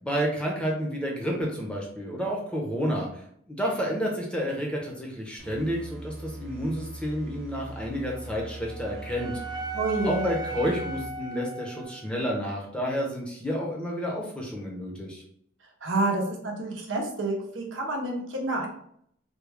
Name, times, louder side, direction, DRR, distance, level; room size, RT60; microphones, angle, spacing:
voice 1, 0.0-9.3 10.0-15.2, equal, 5° left, -2 dB, 0.7 m, -30 dB
sound 1, 5.4-11.3, right 1 dB, 45° right, 0.7 m, -41 dB
Wind instrument woodwind instrument, 8.1-12.3, right 2 dB, 20° right, 0.3 m, -37 dB
voice 2, 9.7-10.3 15.8-18.7, right 2 dB, 90° right, 1 dB, 0.8 m, -28 dB
3.4 x 2.2 x 3.4 m, 0.67 s
head